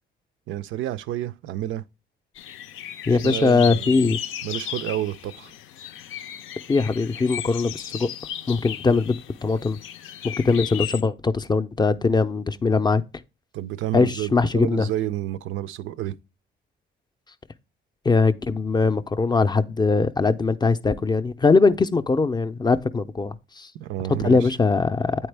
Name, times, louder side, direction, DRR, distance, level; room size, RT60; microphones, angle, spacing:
voice 1, 0.5-1.8 3.1-4.1 4.4-5.5 13.5-16.2 23.8-24.5, right 13 dB, 85° right, 0.4 m, -30 dB
sound 1, 2.3-11.0, left 10 dB, 80° left, 0.5 m, -35 dB
voice 2, 3.1-4.2 6.7-8.1 8.5-9.8 10.2-13.0 13.9-14.9 18.1-23.7 24.2-25.2, left 4 dB, 20° left, 0.4 m, -21 dB
8.6 x 4.3 x 3.3 m
cardioid pair, 90°, 20 cm